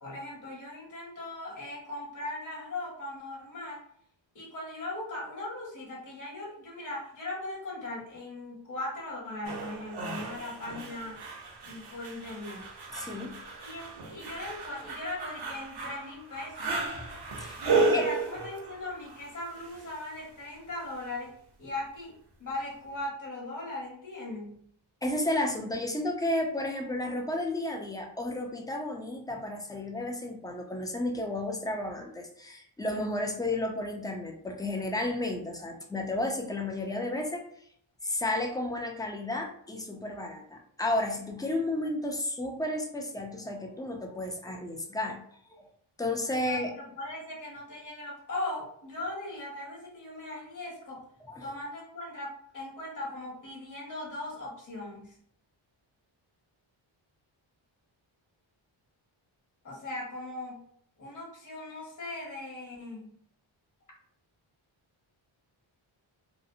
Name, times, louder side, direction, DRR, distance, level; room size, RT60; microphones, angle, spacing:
voice 1, 0.0-3.8 4.3-11.2 11.6-12.6 13.6-16.9 17.7-21.3 21.6-24.6 46.4-51.0 51.4-55.2 59.6-60.6 61.0-63.2, left 2 dB, 40° left, -4 dB, 1.0 m, -39 dB
sound 1, 9.4-20.2 22.5-22.6, right 3 dB, 55° right, 0.7 m, -34 dB
voice 2, 12.9-13.4 17.4-17.6 17.9-18.1 25.0-37.4 38.0-45.2 45.5-45.6 46.0-46.7 51.3-51.5, left 1 dB, 10° left, 1 dB, 0.4 m, -32 dB
2.7 x 2.0 x 2.6 m, 0.64 s
wide cardioid pair, 95°, 49 cm